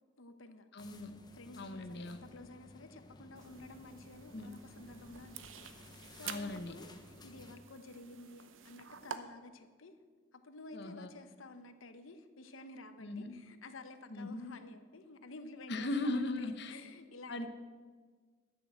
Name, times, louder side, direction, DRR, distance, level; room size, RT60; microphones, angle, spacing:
voice 1, 0.2-0.7 1.3-5.7 6.1-10.0 10.3-17.5, left 2 dB, 80° left, 9 dB, 0.9 m, -52 dB
voice 2, 0.7-1.1 1.6-2.2 4.3-4.5 6.2-6.8 10.7-11.1 13.0-13.3 14.1-14.5 15.7-16.7 17.3-17.5, left 2 dB, 55° left, 8 dB, 0.9 m, -38 dB
sound 1, 0.8-7.6, left 2 dB, 20° left, 0.8 m, -56 dB
sound 2, 3.4-9.2, right 7 dB, 75° right, 0.8 m, -49 dB
12.0 x 6.6 x 7.3 m, 1.5 s
head